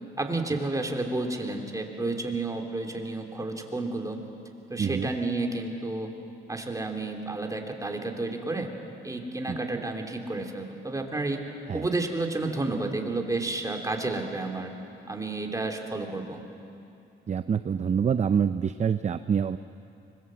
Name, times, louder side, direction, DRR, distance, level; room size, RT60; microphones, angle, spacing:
voice 1, 0.2-4.2 4.7-6.1 6.5-8.7 9.0-11.4 11.7-14.7 15.1-16.4, right 2 dB, 15° right, 2 dB, 3.1 m, -31 dB
voice 2, 4.8-5.1 9.5-9.8 11.7-11.9 17.3-19.6, right 7 dB, 35° right, 11 dB, 0.6 m, -26 dB
25.0 x 21.0 x 7.7 m, 2.6 s
cardioid pair, 90°, 20 cm